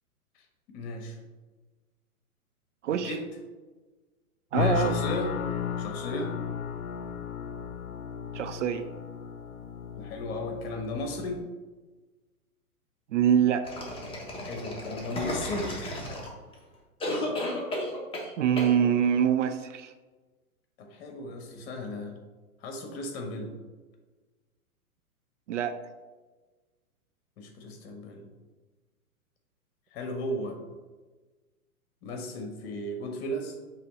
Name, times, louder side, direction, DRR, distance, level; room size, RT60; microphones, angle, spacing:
voice 1, 0.7-1.2 3.0-3.3 4.5-5.4 5.8-6.3 10.0-11.5 14.4-15.7 20.8-22.1 22.6-23.5 27.4-28.3 29.9-30.6 32.0-33.5, left 1 dB, 40° left, 3 dB, 1.4 m, -35 dB
voice 2, 2.8-3.2 4.5-5.0 8.3-8.9 13.1-13.7 18.4-19.9 25.5-25.8, right 8 dB, 55° right, 10 dB, 0.5 m, -25 dB
sound 1, 4.6-11.4, left 8 dB, 65° left, 0.7 m, -34 dB
sound 2, 13.6-16.5 17.0-18.3 18.6-18.7, left 1 dB, 10° left, 1.2 m, -33 dB
7.6 x 3.3 x 4.1 m, 1.3 s
figure-of-eight pair, 115°, 45 cm